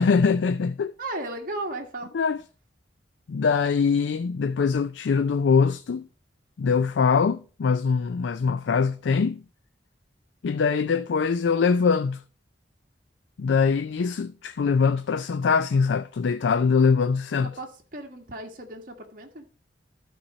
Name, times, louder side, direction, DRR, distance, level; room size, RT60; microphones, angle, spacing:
voice 1, 0.0-0.9 2.1-2.4 3.3-6.1 6.6-9.4 10.4-12.2 13.4-17.5, left 5 dB, 75° left, 0.4 m, -23 dB
voice 2, 1.0-2.1 17.6-19.5, right 2 dB, 50° right, 1.7 m, -35 dB
12.5 x 4.3 x 5.1 m
head